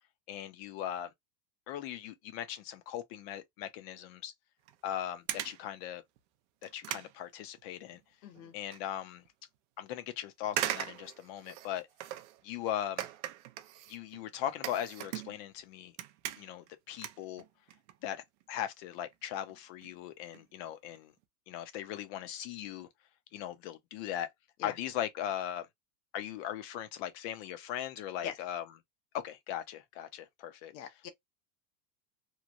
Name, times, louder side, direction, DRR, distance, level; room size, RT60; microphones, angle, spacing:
voice 1, 0.3-1.1 1.7-4.3 4.8-6.0 6.6-8.0 8.5-9.2 9.8-11.9 12.4-13.1 13.9-15.9 16.4-17.4 18.0-21.1 21.5-22.9 23.3-24.3 24.6-25.7 26.1-28.6 29.1-30.7, left 11 dB, 40° left, 0.6 m, -39 dB
sound 1, 4.7-4.9 5.3-5.7 6.2-6.3 6.6-8.0 8.3-8.8 9.3-9.4 10.5-12.4 13.0-15.6 15.9-16.7 17.0-18.0 18.2-18.4 19.1-19.2 19.5-19.6 19.8-19.9 20.2-20.4 20.8-21.0 21.2-21.3, right 13 dB, 50° right, 0.4 m, -40 dB
voice 2, 8.2-8.5 24.6-24.8 28.2-28.4 30.7-31.1, left 8 dB, 80° left, 1.1 m, -41 dB
3.0 x 2.1 x 2.5 m
supercardioid pair, 155°, 49 cm